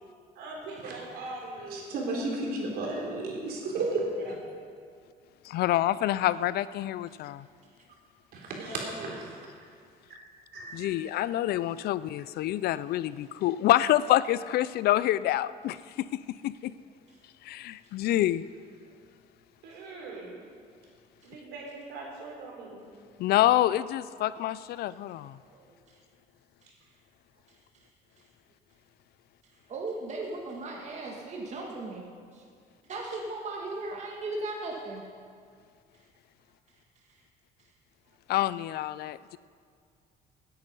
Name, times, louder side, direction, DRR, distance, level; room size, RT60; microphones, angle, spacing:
voice 1, 0.3-1.8 4.2-4.3 8.6-9.2 19.6-20.4 21.2-22.8, right 2 dB, 80° right, -1 dB, 3.9 m, -41 dB
voice 2, 1.7-4.0 8.3-8.6 10.5-10.7, right 3 dB, 65° right, -1 dB, 3.7 m, -32 dB
voice 3, 5.4-7.5 10.7-16.7 17.4-18.5 23.2-25.4 38.3-39.4, left 14 dB, 70° left, 17 dB, 0.4 m, -27 dB
voice 4, 25.4-26.0 27.5-27.9 29.4-32.0 32.3-32.5 32.8-35.0, right 2 dB, 40° right, -1 dB, 1.9 m, -37 dB
17.5 x 9.5 x 5.5 m, 2.1 s
cardioid pair, 110°, 17 cm